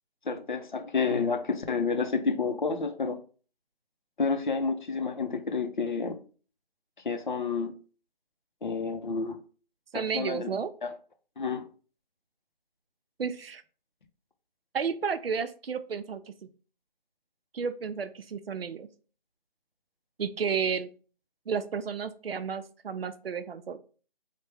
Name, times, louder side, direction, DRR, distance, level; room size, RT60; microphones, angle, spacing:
voice 1, 0.2-3.2 4.2-6.2 7.0-7.7 8.6-9.4 9.9-10.5 10.8-10.9 11.4-11.7, left 4 dB, 55° left, 0.5 m, -29 dB
voice 2, 9.9-10.7 13.2-13.6 14.7-16.2 17.5-18.9 20.2-20.9 21.5-23.8, right 6 dB, 80° right, 0.5 m, -32 dB
3.3 x 2.2 x 3.3 m
figure-of-eight pair, 170°, 29 cm